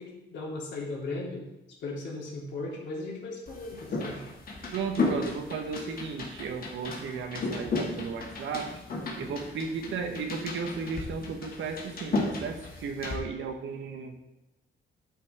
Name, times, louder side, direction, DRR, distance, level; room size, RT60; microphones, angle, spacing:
voice 1, 0.0-1.4 1.8-4.2, left 2 dB, 65° left, -4 dB, 3.2 m, -37 dB
sound 1, 3.5-13.2, left 3 dB, 45° left, 2.3 m, -34 dB
voice 2, 4.7-8.7 9.2-14.2, right 5 dB, 70° right, 5 dB, 1.3 m, -35 dB
11.5 x 5.8 x 3.6 m, 0.95 s
cardioid pair, 90°, 20 cm